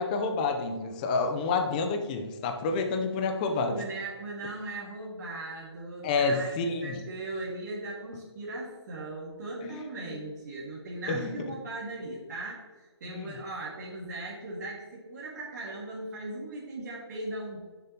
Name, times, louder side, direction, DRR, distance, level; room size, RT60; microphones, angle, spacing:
voice 1, 0.0-3.8 6.0-7.0 9.6-9.8 11.1-11.3 13.1-13.3, left 4 dB, 20° left, 5 dB, 0.6 m, -29 dB
voice 2, 3.5-17.6, right 2 dB, 40° right, -5 dB, 2.0 m, -38 dB
10.0 x 7.0 x 2.9 m, 1.3 s
hypercardioid pair, 160°, 14 cm